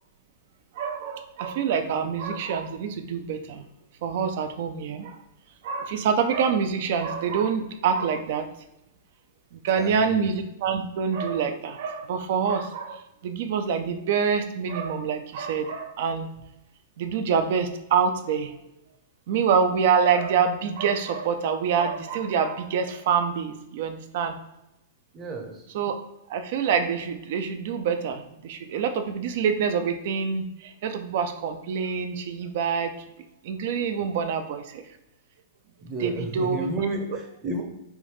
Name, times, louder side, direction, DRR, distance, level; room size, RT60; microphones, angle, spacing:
voice 1, 0.8-3.7 4.0-5.2 5.6-8.5 9.5-16.3 17.0-18.5 19.3-24.3 25.7-25.9 26.3-32.9 33.4-34.8 36.0-36.7, right 6 dB, 60° right, 7 dB, 0.4 m, -26 dB
voice 2, 9.8-10.3 25.1-25.7 35.8-37.6, right 2 dB, 25° right, 3 dB, 0.8 m, -32 dB
3.4 x 2.6 x 3.1 m, 0.87 s
hypercardioid pair, 110°, 0 cm